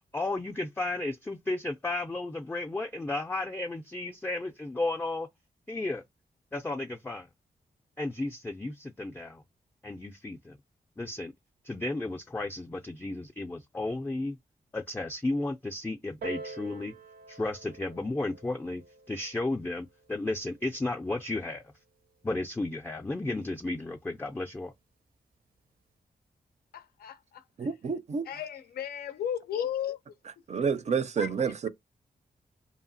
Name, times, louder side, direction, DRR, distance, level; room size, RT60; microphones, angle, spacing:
voice 1, 0.1-5.3 5.7-6.0 6.5-7.3 8.0-9.4 9.8-10.6 11.0-11.3 11.6-14.4 14.7-16.9 17.3-18.8 19.1-21.6 22.2-24.7, left 2 dB, 15° left, 0.4 m, -33 dB
Piano, 16.2-21.4 22.2-22.3, right 4 dB, 85° right, 0.7 m, -47 dB
voice 2, 26.7-27.7 28.3-30.0 31.2-31.3, left 9 dB, 85° left, 0.4 m, -35 dB
voice 3, 27.6-28.3 30.5-31.7, right 6 dB, 45° right, 0.5 m, -29 dB
2.8 x 2.4 x 2.6 m
cardioid pair, 60°, 15 cm